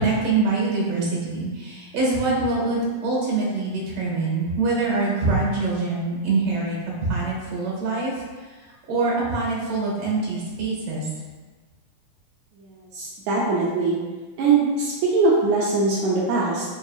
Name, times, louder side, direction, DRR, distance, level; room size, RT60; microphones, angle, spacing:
voice 1, 0.0-6.8 7.1-8.1 8.9-11.1, right 3 dB, 65° right, -4 dB, 1.9 m, -24 dB
voice 2, 12.9-14.0 14.4-16.6, right 3 dB, 80° right, -6 dB, 1.7 m, -21 dB
5.3 x 2.7 x 2.3 m, 1.3 s
omnidirectional pair, 3.8 m